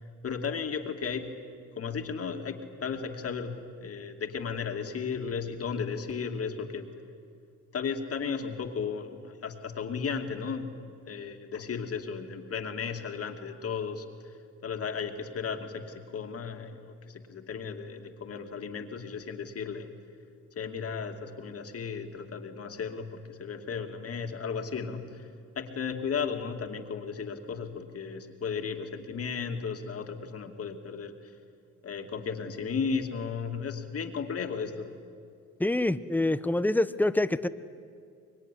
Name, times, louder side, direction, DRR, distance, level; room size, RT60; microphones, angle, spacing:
voice 1, 0.2-1.3 1.8-6.9 7.7-14.0 14.6-19.9 20.6-25.3 25.6-31.1 31.8-34.9, left 6 dB, 50° left, 5 dB, 2.5 m, -35 dB
voice 2, 35.6-37.5, left 1 dB, 5° left, 13 dB, 0.9 m, -26 dB
24.5 x 22.5 x 10.0 m, 2.3 s
cardioid pair, 90°, 30 cm